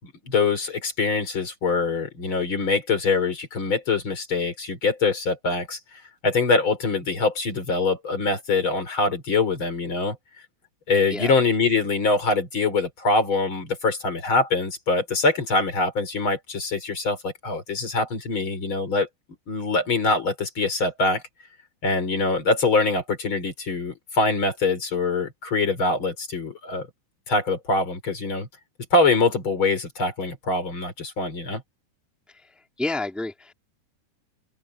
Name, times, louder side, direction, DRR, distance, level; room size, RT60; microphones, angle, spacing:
voice 1, 0.0-5.8 6.2-10.2 10.9-19.1 19.5-21.2 21.8-26.9 27.3-28.5 28.9-31.6, left 3 dB, 30° left, 4.4 m, -24 dB
voice 2, 32.3-33.5, left 2 dB, ahead, 2.8 m, -30 dB
open air
omnidirectional pair, 5.1 m